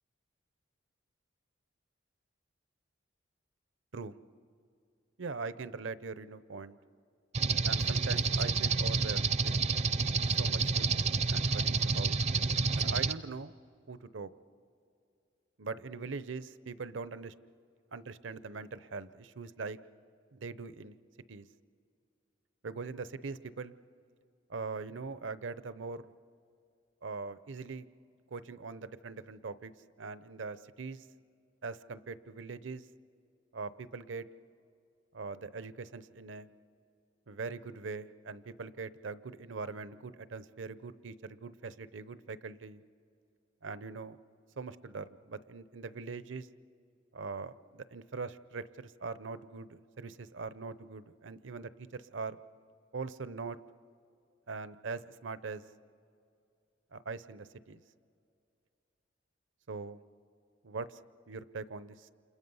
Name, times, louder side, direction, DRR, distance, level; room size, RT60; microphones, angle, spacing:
voice 1, 5.2-6.8 7.6-9.6 10.4-12.2 12.7-13.5 13.9-14.3 15.6-17.3 17.9-19.8 20.3-21.0 21.3-21.5 22.6-23.7 24.5-26.1 27.0-27.9 28.3-29.7 30.0-31.1 31.6-32.8 33.5-34.3 35.1-36.5 37.3-42.8 43.6-44.2 44.6-46.5 47.1-52.4 52.9-53.6 54.5-55.6 56.9-57.8 59.7-60.0 60.6-61.0 61.3-62.1, right 4 dB, 70° right, 14 dB, 0.7 m, -42 dB
sound 1, 7.3-13.1, right 4 dB, 35° right, 0.5 m, -29 dB
29.5 x 27.5 x 5.5 m, 2.4 s
head